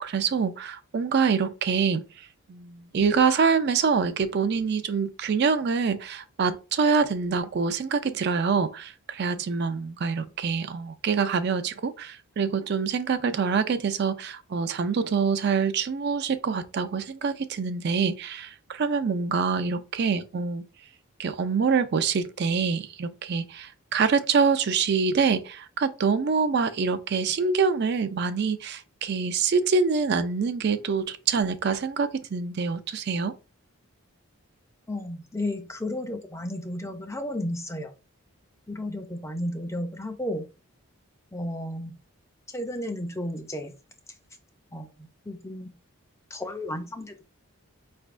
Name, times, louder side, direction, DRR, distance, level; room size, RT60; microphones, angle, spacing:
voice 1, 0.0-20.6 21.2-33.3, right 5 dB, 50° right, 0.3 m, -25 dB
voice 2, 34.9-37.9 38.7-40.5 41.3-41.9 42.5-43.7 44.7-45.7 46.3-47.2, left 1 dB, 10° left, 0.4 m, -33 dB
5.0 x 3.3 x 2.5 m
head